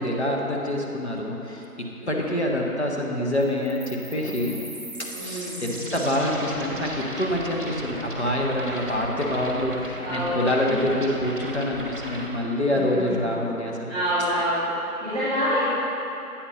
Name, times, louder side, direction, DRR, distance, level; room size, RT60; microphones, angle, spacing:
voice 1, 0.0-1.6 2.1-4.6 5.0-13.9, left 1 dB, 45° left, -1 dB, 0.9 m, -26 dB
voice 2, 2.0-2.6 5.1-6.0 8.7-9.3 10.0-10.7 12.7-13.3 13.9-15.6, equal, ahead, -15 dB, 1.3 m, -28 dB
sound 1, 3.4-12.3, right 1 dB, 35° right, 1.0 m, -36 dB
8.7 x 4.4 x 5.5 m, 3.0 s
figure-of-eight pair, 180°, 46 cm